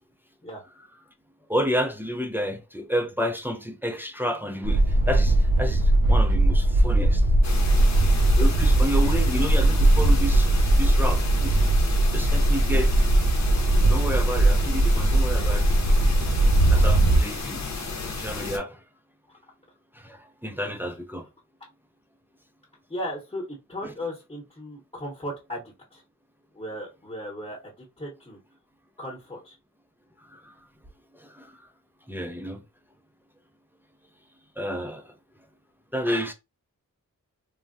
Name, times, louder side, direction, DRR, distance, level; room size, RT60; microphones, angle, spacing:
voice 1, 1.5-7.2 7.9-10.5 10.8-11.6 12.1-12.9 13.9-15.7 16.7-17.6 18.0-18.8 19.9-21.2 23.8-23.9 30.3-30.5 31.2-31.6 32.1-32.6 34.6-35.1 35.9-36.3, equal, 5° right, 0.4 m, -30 dB
sound 1, 4.6-17.2, right 1 dB, 70° right, 0.7 m, -20 dB
sound 2, 7.4-18.6, left 3 dB, 50° left, 0.7 m, -33 dB
voice 2, 22.9-25.6 25.9-26.0 26.5-28.4 29.0-29.6, equal, 20° left, 0.9 m, -36 dB
3.3 x 2.2 x 2.5 m
wide cardioid pair, 90°, 35 cm